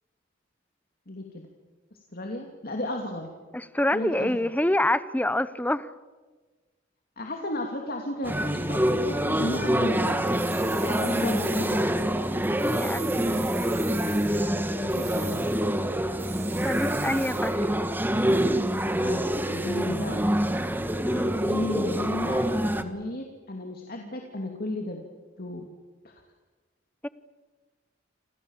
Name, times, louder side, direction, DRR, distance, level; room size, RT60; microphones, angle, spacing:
voice 1, 1.1-1.4 1.9-3.3 3.9-4.5 7.2-10.3 10.8-12.1 14.8-15.5 19.0-20.2 21.4-25.0 25.4-25.8 26.0-26.2, left 1 dB, 50° left, 2 dB, 2.8 m, -34 dB
voice 2, 3.5-5.9 12.6-13.4 16.6-17.6 21.0-21.3 27.0-27.1, left 1 dB, 10° left, 16 dB, 0.9 m, -27 dB
sound 1, 8.2-22.8, right 1 dB, 10° right, 1.6 m, -26 dB
sound 2, 10.3-11.9 12.6-14.4 14.9-15.6 16.2-17.6, right 8 dB, 35° right, 3.5 m, -41 dB
28.5 x 27.0 x 7.4 m, 1.3 s
head